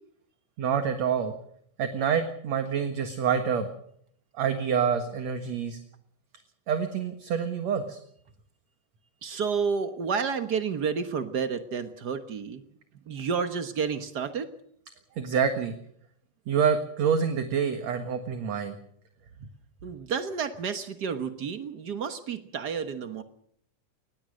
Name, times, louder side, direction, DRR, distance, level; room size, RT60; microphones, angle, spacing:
voice 1, 0.6-1.3 1.8-3.7 4.3-5.8 6.7-8.0 15.2-15.8 16.5-18.8, right 7 dB, 60° right, 7 dB, 2.6 m, -27 dB
voice 2, 9.2-12.6 13.1-14.5 19.8-23.2, right 6 dB, 75° right, 9 dB, 0.9 m, -30 dB
22.5 x 20.0 x 6.4 m, 0.67 s
omnidirectional pair, 3.8 m